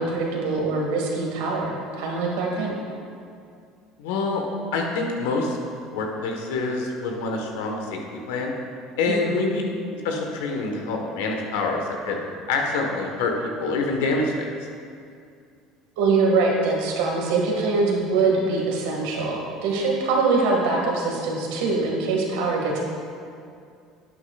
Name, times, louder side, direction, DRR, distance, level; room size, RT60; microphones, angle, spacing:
voice 1, 0.0-2.7 9.2-9.4 16.0-22.8, right 3 dB, 80° right, -1 dB, 1.9 m, -23 dB
voice 2, 4.0-4.4 4.7-5.6 5.9-8.5 9.0-9.6 10.0-12.2 12.5-14.4, left 3 dB, 80° left, 1 dB, 1.3 m, -26 dB
11.0 x 8.8 x 2.4 m, 2.3 s
hypercardioid pair, 80°, 0 cm